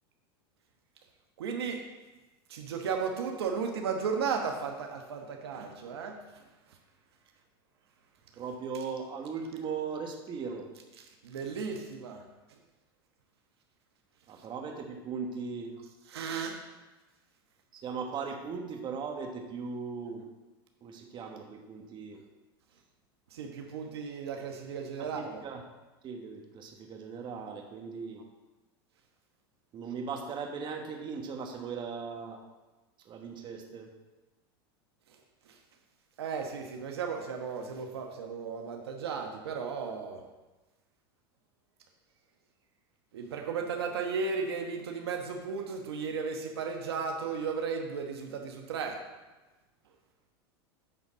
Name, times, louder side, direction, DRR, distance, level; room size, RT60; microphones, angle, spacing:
voice 1, 1.4-1.8 2.5-6.2 11.2-12.3 16.1-16.6 23.3-25.4 35.5-35.6 36.2-40.2 43.1-49.0, right 5 dB, 85° right, 3 dB, 1.1 m, -35 dB
voice 2, 8.4-10.7 14.3-15.7 17.7-20.2 20.8-22.2 25.0-25.6 26.0-28.2 29.7-32.4 33.0-33.9, right 5 dB, 35° right, 3 dB, 1.3 m, -38 dB
9.3 x 4.0 x 6.2 m, 1.1 s
hypercardioid pair, 110°, 13 cm